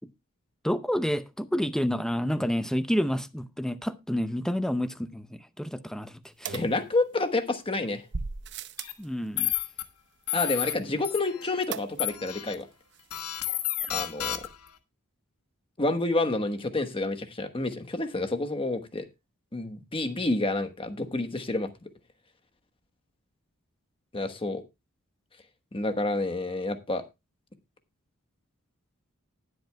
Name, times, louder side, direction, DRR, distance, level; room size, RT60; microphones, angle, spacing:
voice 1, 0.6-6.6 9.0-9.5, equal, 5° left, 0.6 m, -29 dB
voice 2, 6.5-8.0 10.3-12.7 13.9-14.4 15.8-19.0 19.5-21.7 24.1-24.6 25.7-27.0, left 2 dB, 25° left, 1.2 m, -29 dB
sound 1, 6.5-7.4 8.1-9.1 11.7-12.3 12.6-12.7 12.9-13.0, right 5 dB, 55° right, 0.7 m, -37 dB
sound 2, 8.8-8.9 9.4-9.8 10.3-10.7 11.0-11.6 12.0-12.5 13.1-14.7, left 12 dB, 90° left, 1.3 m, -31 dB
19.5 x 7.8 x 2.2 m
head